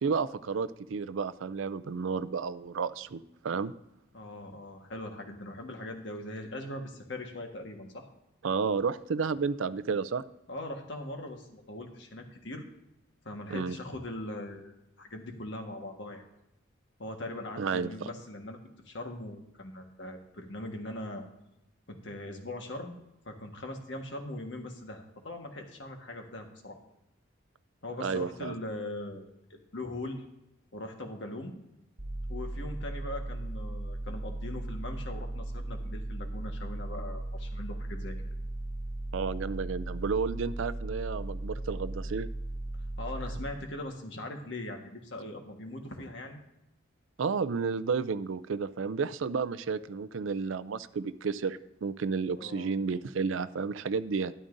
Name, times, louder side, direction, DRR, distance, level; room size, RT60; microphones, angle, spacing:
voice 1, 0.0-3.7 8.4-10.2 13.5-13.8 17.6-17.9 28.0-28.5 39.1-42.3 47.2-54.3, right 5 dB, 75° right, 15 dB, 0.4 m, -31 dB
voice 2, 4.1-8.1 10.5-12.6 13.2-16.2 17.0-18.6 18.8-21.3 21.9-23.0 23.2-26.8 27.8-30.2 30.7-31.5 32.3-38.2 43.0-46.4 52.4-52.7, left 1 dB, 60° left, 3 dB, 1.4 m, -40 dB
sound 1, 32.0-43.4, right 1 dB, 35° right, 1.2 m, -37 dB
12.5 x 11.0 x 2.6 m, 0.90 s
head